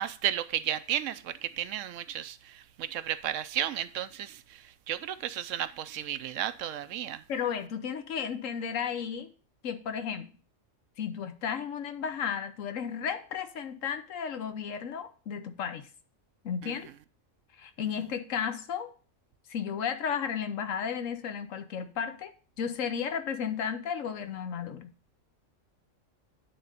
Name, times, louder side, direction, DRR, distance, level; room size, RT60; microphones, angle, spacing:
voice 1, 0.0-4.4 4.9-7.2 16.6-16.7, right 11 dB, 75° right, 0.9 m, -33 dB
voice 2, 7.3-9.3 9.6-10.3 11.0-15.9 16.4-16.9 17.6-18.9 19.5-24.9, left 7 dB, 80° left, 1.2 m, -33 dB
9.2 x 3.8 x 6.6 m
omnidirectional pair, 1.3 m